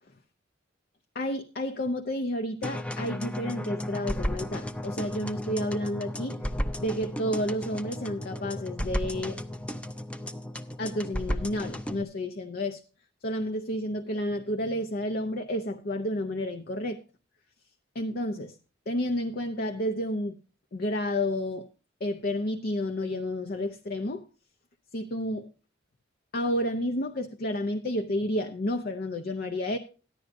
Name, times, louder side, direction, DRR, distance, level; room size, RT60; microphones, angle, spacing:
voice 1, 1.1-6.4 6.8-9.4 10.8-12.8 13.2-17.0 17.9-18.5 18.9-20.4 20.7-21.7 22.0-24.3 24.9-25.5 26.3-29.8, left 1 dB, 50° left, 0.7 m, -31 dB
sound 1, 2.6-12.0, equal, 5° left, 0.5 m, -34 dB
14.0 x 10.5 x 2.6 m
head